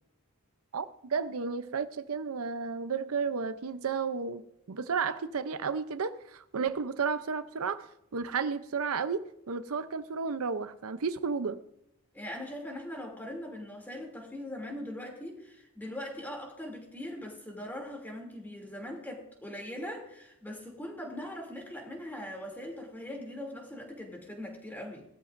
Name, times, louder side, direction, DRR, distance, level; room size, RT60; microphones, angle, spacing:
voice 1, 0.7-11.6, right 5 dB, 80° right, 0.6 m, -33 dB
voice 2, 12.1-25.0, left 1 dB, 10° left, 2.8 m, -41 dB
18.5 x 13.0 x 2.6 m
head